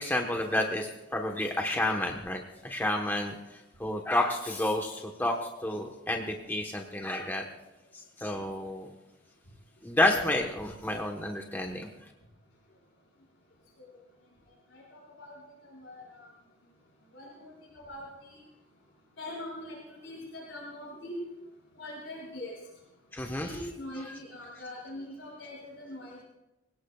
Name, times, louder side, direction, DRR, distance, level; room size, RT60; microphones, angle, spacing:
voice 1, 0.0-3.3 3.8-5.3 5.6-7.4 7.9-8.9 9.8-11.9 23.1-23.7 23.9-24.1, left 1 dB, 10° left, 1 dB, 1.1 m, -30 dB
voice 2, 14.7-15.3 15.6-16.3 17.1-18.4 19.2-21.1 21.7-22.5 23.4-26.2, left 1 dB, 70° left, -4 dB, 5.6 m, -43 dB
25.5 x 17.5 x 2.4 m, 0.98 s
head